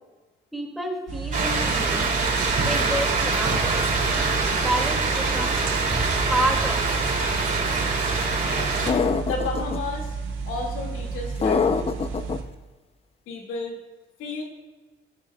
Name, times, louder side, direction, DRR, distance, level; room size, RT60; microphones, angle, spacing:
voice 1, 0.5-2.1 2.6-3.7 4.5-5.6 6.3-7.0, right 1 dB, ahead, 1 dB, 2.3 m, -29 dB
sound 1, 1.1-12.4, right 4 dB, 85° right, 1.5 m, -32 dB
sound 2, 1.3-8.9, right 4 dB, 45° right, 2.7 m, -24 dB
voice 2, 8.4-8.8 9.2-10.2 10.4-12.0 13.3-13.8 14.2-14.4, left 3 dB, 90° left, 0 dB, 2.1 m, -33 dB
sound 3, 8.9-9.8 11.4-12.4, left 5 dB, 30° left, 0.6 m, -23 dB
15.5 x 12.5 x 2.3 m, 1.2 s
cardioid pair, 90°, 20 cm